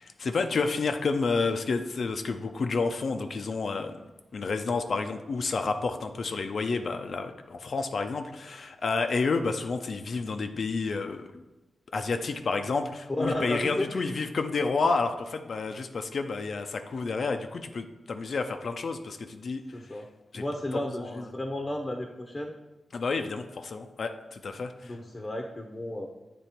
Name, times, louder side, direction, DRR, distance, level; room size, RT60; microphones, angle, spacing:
voice 1, 0.0-3.9 4.3-11.4 11.9-19.6 20.3-20.4 20.7-21.2 22.9-24.9, left 4 dB, 65° left, 7 dB, 0.5 m, -30 dB
voice 2, 13.1-14.1 19.7-20.1 20.3-22.5 24.8-26.1, left 1 dB, 30° left, 2 dB, 0.7 m, -33 dB
8.0 x 3.0 x 4.3 m, 1.1 s
cardioid pair, 75°, 0 cm